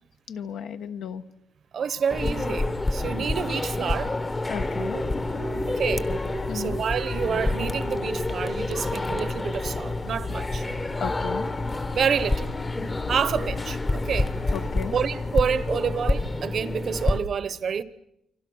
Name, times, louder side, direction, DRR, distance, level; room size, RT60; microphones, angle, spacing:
voice 1, 0.3-1.2 4.5-5.0 6.5-6.8 11.0-11.5 14.5-15.0, left 8 dB, 70° left, 1.3 m, -34 dB
voice 2, 1.7-4.1 5.7-6.1 6.5-10.7 11.9-12.5 13.1-14.3 14.9-17.8, right 7 dB, 45° right, 0.9 m, -28 dB
sound 1, 2.1-17.2, left 2 dB, 20° left, 1.0 m, -28 dB
sound 2, 4.7-16.3, left 2 dB, 45° left, 2.3 m, -36 dB
29.0 x 25.0 x 6.3 m
cardioid pair, 150°, 0 cm